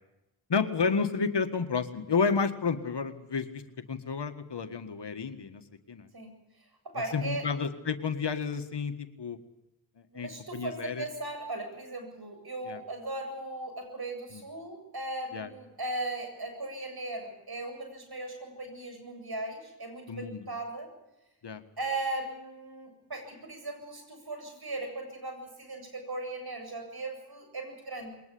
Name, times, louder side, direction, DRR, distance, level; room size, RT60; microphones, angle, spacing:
voice 1, 0.5-3.6 3.9-5.6 5.9-6.1 7.1-9.4 10.1-11.1 12.7-12.8 14.3-14.4 15.3-15.5 20.1-20.4 21.4-21.6, left 5 dB, 70° left, 9 dB, 1.9 m, -31 dB
voice 2, 6.1-7.4 10.1-20.9 21.8-28.1, right 2 dB, 60° right, 5 dB, 7.9 m, -38 dB
22.0 x 19.0 x 8.6 m, 0.93 s
cardioid pair, 45°, 43 cm